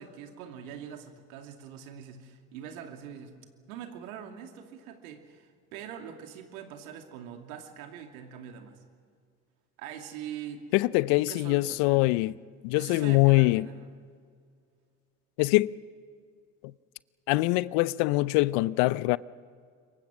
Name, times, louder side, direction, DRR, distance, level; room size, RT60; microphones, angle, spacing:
voice 1, 0.0-3.4 3.7-8.8 9.8-10.7 11.1-12.1 12.7-13.9, right 8 dB, 75° right, 2.7 m, -43 dB
voice 2, 10.7-12.4 12.6-13.7 15.4-15.7 17.3-19.2, left 20 dB, 65° left, 0.7 m, -23 dB
27.0 x 23.5 x 6.3 m
hypercardioid pair, 65°, 43 cm